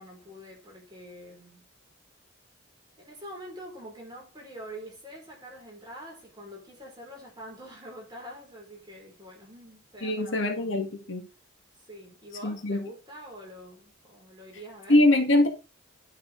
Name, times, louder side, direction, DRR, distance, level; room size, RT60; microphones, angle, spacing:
voice 1, 0.0-1.7 3.0-10.9 11.8-15.0, equal, 20° right, 5.3 m, -45 dB
voice 2, 10.0-11.3 12.4-12.9 14.9-15.5, left 1 dB, 70° left, 2.1 m, -23 dB
10.0 x 6.2 x 4.0 m
head